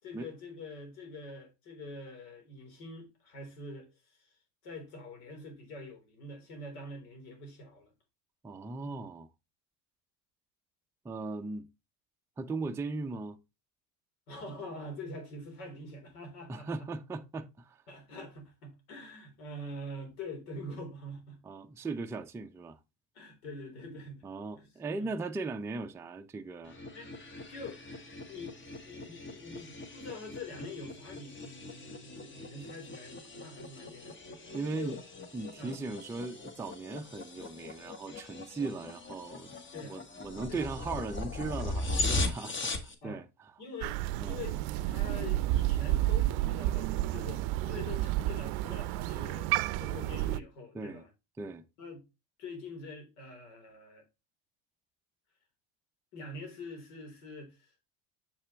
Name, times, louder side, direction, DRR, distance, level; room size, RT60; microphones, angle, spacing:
voice 1, 0.0-4.3 4.6-7.9 14.3-16.7 17.9-21.4 23.1-24.3 24.6-24.7 25.0-25.1 26.9-27.1 27.5-27.8 28.3-34.2 34.5-35.0 35.6-35.8 39.7-40.0 40.5-40.6 43.0-43.2 43.6-44.0 44.3-49.5 49.8-51.1 51.8-52.0 52.4-54.0 56.1-57.7, left 2 dB, 85° left, 3.8 m, -45 dB
voice 2, 8.4-9.3 11.0-11.7 12.4-13.4 16.5-17.8 21.4-22.8 24.2-26.8 34.5-35.0 35.3-43.5 44.2-44.4 50.7-51.0 51.4-51.6, right 3 dB, 5° right, 0.4 m, -38 dB
sound 1, 26.6-42.9, left 2 dB, 25° left, 1.3 m, -39 dB
Crow, 43.8-50.4, right 16 dB, 70° right, 0.5 m, -31 dB
6.9 x 5.6 x 3.1 m
supercardioid pair, 110°, 43 cm